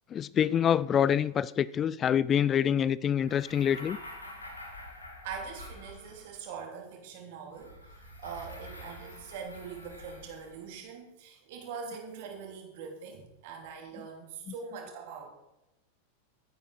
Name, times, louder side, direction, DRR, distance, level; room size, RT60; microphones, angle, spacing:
voice 1, 0.1-4.0, left 9 dB, 25° left, 0.3 m, -26 dB
sound 1, 3.2-6.4 7.5-10.7, left 1 dB, 80° left, 2.6 m, -47 dB
voice 2, 5.2-15.3, right 6 dB, 50° right, 3.3 m, -43 dB
15.5 x 9.2 x 4.2 m
figure-of-eight pair, 90°, 0 cm